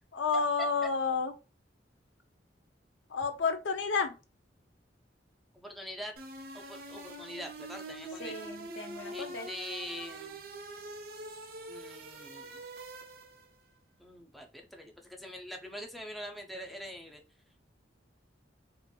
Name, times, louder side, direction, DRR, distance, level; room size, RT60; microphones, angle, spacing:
voice 1, 0.1-1.3 3.1-4.1 8.2-9.5, left 5 dB, 80° left, 6 dB, 0.5 m, -31 dB
voice 2, 5.5-6.1 6.5-8.4 9.1-10.4 11.7-12.6 14.0-14.9 15.2-17.2, equal, ahead, 2 dB, 0.4 m, -43 dB
sound 1, 6.2-13.6, right 2 dB, 55° right, 0.5 m, -44 dB
2.8 x 2.4 x 2.2 m, 0.30 s
head